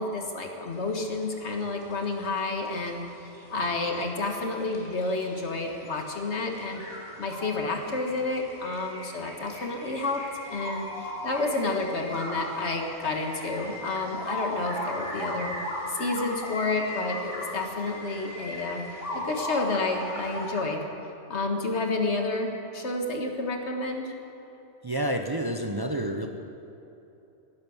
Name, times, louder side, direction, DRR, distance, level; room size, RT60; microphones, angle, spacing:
voice 1, 0.0-6.8 7.2-15.6 15.9-18.8 19.1-20.8 21.3-24.1, left 3 dB, 70° left, 3 dB, 1.9 m, -30 dB
sound 1, 0.7-20.6, left 1 dB, 50° left, 3.2 m, -39 dB
voice 2, 24.8-26.3, right 1 dB, 25° right, 4 dB, 0.7 m, -29 dB
17.5 x 10.5 x 7.1 m, 2.9 s
omnidirectional pair, 1.2 m